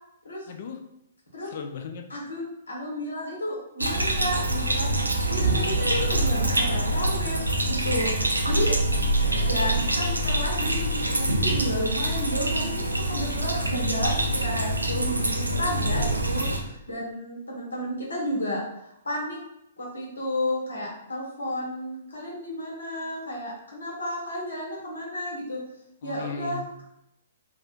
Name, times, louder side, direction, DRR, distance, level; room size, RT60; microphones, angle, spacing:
voice 1, 0.5-0.8 1.5-2.0 8.9-9.9 26.0-26.6, left 5 dB, 50° left, 5 dB, 0.4 m, -37 dB
voice 2, 2.1-4.9 5.3-8.7 9.4-12.7 13.1-18.6 19.0-19.4 19.8-25.6 26.0-26.8, equal, 65° left, -4 dB, 1.3 m, -32 dB
sound 1, 3.8-16.6, right 1 dB, 80° right, 0.4 m, -25 dB
3.3 x 2.4 x 2.5 m, 0.81 s
figure-of-eight pair, 115°, 0 cm